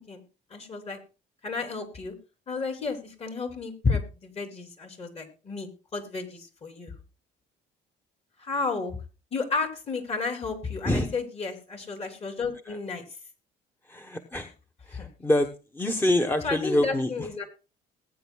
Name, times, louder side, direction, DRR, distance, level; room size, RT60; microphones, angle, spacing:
voice 1, 0.5-1.0 1.4-2.1 2.5-6.9 8.4-9.0 9.3-13.0 14.9-15.1 16.4-17.4, left 4 dB, 40° left, 4 dB, 3.6 m, -32 dB
voice 2, 13.9-14.5 14.9-15.5 15.7-17.3, left 1 dB, 10° left, 5 dB, 1.2 m, -26 dB
20.0 x 9.5 x 2.3 m, 0.31 s
cardioid pair, 110°, 17 cm